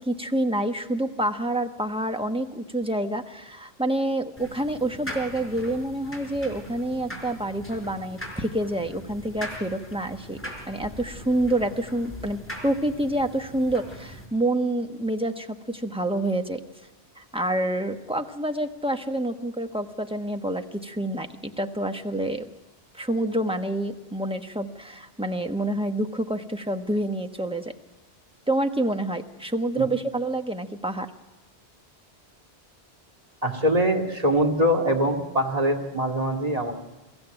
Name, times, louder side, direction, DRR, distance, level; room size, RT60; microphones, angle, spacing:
voice 1, 0.0-10.4 10.7-16.6 17.2-22.5 22.9-27.7 28.5-31.1, right 1 dB, 5° right, 5 dB, 1.1 m, -27 dB
sound 1, 4.4-14.3, equal, 10° left, 4.3 m, -40 dB
voice 2, 33.4-36.7, equal, 35° right, 1 dB, 2.3 m, -23 dB
23.5 x 15.5 x 9.0 m, 1.1 s
omnidirectional pair, 1.1 m